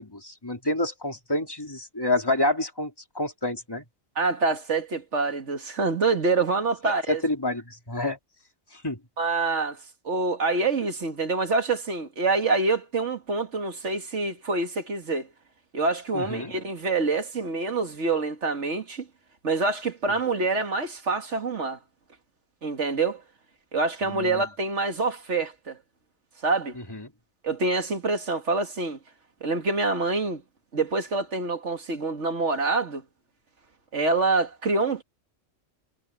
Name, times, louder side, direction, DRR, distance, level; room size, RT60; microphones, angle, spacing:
voice 1, 0.0-3.8 7.1-8.2 8.7-9.0 16.1-16.5 24.0-24.4 26.9-27.1, left 2 dB, 20° left, 3.1 m, -28 dB
voice 2, 4.2-7.2 9.2-15.3 15.7-19.1 19.4-21.8 22.6-23.2 23.7-25.8 26.4-26.8 27.4-29.0 29.4-30.4 30.7-33.0 33.9-35.0, right 3 dB, 65° right, 2.3 m, -26 dB
omnidirectional pair, 1.3 m